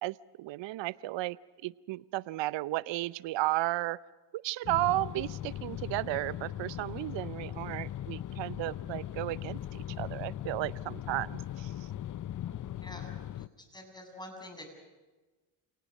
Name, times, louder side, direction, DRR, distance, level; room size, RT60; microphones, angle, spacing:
voice 1, 0.0-1.4 1.6-4.0 4.3-11.7, right 17 dB, 65° right, 20 dB, 0.8 m, -34 dB
sound 1, 4.6-13.5, left 11 dB, 40° left, 0.7 m, -39 dB
voice 2, 12.5-13.5 13.7-14.7, left 1 dB, 10° left, 3 dB, 7.2 m, -47 dB
28.5 x 18.5 x 6.6 m, 1.2 s
supercardioid pair, 70°, 48 cm